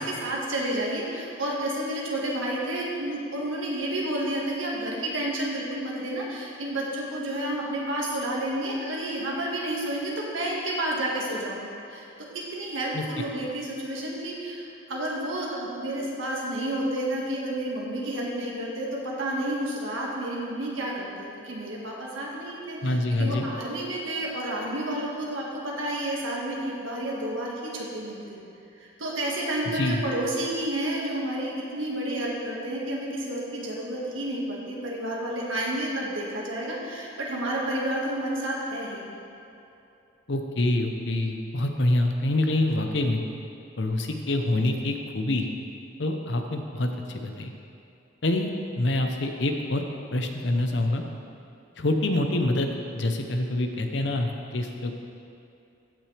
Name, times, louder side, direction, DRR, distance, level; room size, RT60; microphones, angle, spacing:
voice 1, 0.0-12.1 12.5-28.5 28.8-39.1, right 1 dB, 75° right, -3 dB, 1.7 m, -30 dB
voice 2, 22.8-23.5 29.7-30.0 40.3-43.2 43.8-45.5 46.0-47.5 48.2-48.5 48.8-49.8 50.1-51.0 51.8-54.9, left 1 dB, 60° left, 4 dB, 0.8 m, -26 dB
15.0 x 6.2 x 3.3 m, 2.7 s
head